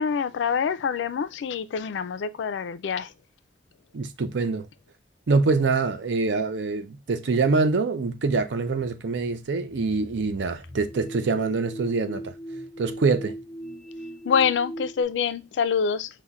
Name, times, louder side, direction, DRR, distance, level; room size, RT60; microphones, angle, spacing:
voice 1, 0.0-3.1 14.3-16.1, left 6 dB, 90° left, 0.3 m, -26 dB
voice 2, 3.9-4.7 5.3-12.3 12.8-13.4, right 4 dB, 80° right, 0.5 m, -25 dB
sound 1, 8.8-15.0, right 1 dB, 5° left, 0.3 m, -40 dB
5.4 x 2.1 x 2.3 m
head